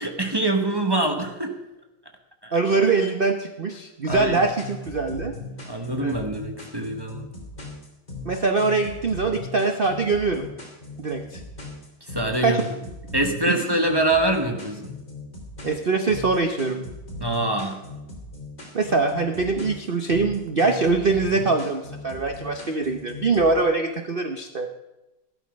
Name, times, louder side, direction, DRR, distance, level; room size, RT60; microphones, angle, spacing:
voice 1, 0.0-1.6 2.4-2.6 4.0-4.5 5.7-7.3 12.1-12.6 13.1-15.0 17.2-17.8, right 1 dB, 20° right, 4 dB, 0.6 m, -24 dB
voice 2, 2.5-5.3 6.0-6.1 8.2-10.5 11.0-11.4 12.4-12.6 13.5-13.6 15.6-16.8 18.7-24.7, right 3 dB, 75° right, 5 dB, 0.5 m, -23 dB
sound 1, 4.1-23.6, left 2 dB, 20° left, 3.0 m, -38 dB
13.5 x 11.5 x 5.2 m, 0.98 s
omnidirectional pair, 2.3 m